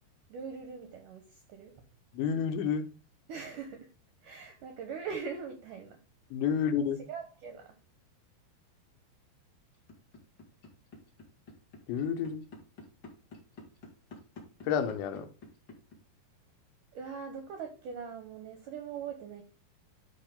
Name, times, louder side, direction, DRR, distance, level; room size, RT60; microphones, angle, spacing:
voice 1, 0.3-1.7 3.3-3.9 4.2-6.0 7.1-7.7 16.9-19.4, right 6 dB, 75° right, 6 dB, 1.9 m, -41 dB
voice 2, 2.1-2.8 6.3-7.0 11.9-12.5 14.7-15.3, left 7 dB, 90° left, 8 dB, 3.3 m, -30 dB
sound 1, 9.7-16.0, left 3 dB, 45° left, 1.5 m, -48 dB
11.5 x 3.9 x 3.6 m, 0.35 s
omnidirectional pair, 5.1 m